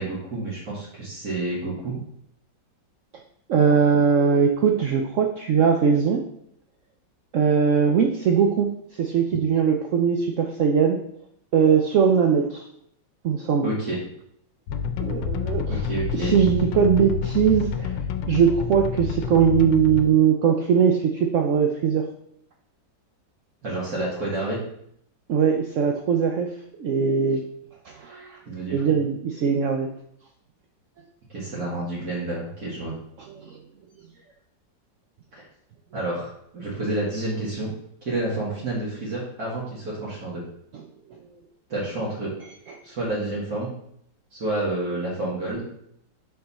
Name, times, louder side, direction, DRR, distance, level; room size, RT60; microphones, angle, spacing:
voice 1, 0.0-2.0 13.6-14.0 15.7-16.3 23.6-24.6 28.5-28.8 31.3-32.9 35.3-35.4 35.9-37.7 38.1-40.4 41.7-42.3 42.8-43.7 44.3-45.6, right 2 dB, 55° right, -7 dB, 2.1 m, -29 dB
voice 2, 3.5-6.2 7.3-11.0 11.5-12.6 13.2-13.7 15.0-15.8 16.1-18.0 18.3-22.1 25.3-26.5 26.8-27.5 27.9-28.4 28.7-29.9 33.4-33.6, right 6 dB, 80° right, 4 dB, 0.7 m, -20 dB
sound 1, 14.7-20.1, left 7 dB, 85° left, 1.3 m, -28 dB
6.4 x 4.6 x 4.1 m, 0.72 s
omnidirectional pair, 2.0 m